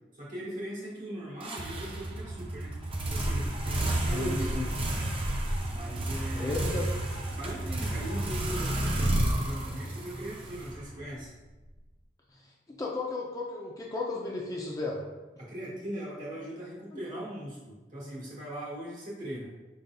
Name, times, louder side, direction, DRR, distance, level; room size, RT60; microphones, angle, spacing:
voice 1, 0.1-2.7 3.1-4.7 5.7-6.9 7.3-11.3 15.4-19.5, right 1 dB, 45° right, -4 dB, 1.4 m, -40 dB
sound 1, 1.4-11.2, right 1 dB, 30° right, 0.6 m, -31 dB
voice 2, 4.1-4.6 6.3-6.9 12.8-15.0, left 3 dB, 20° left, -2 dB, 0.5 m, -34 dB
4.9 x 4.0 x 2.2 m, 1.2 s
head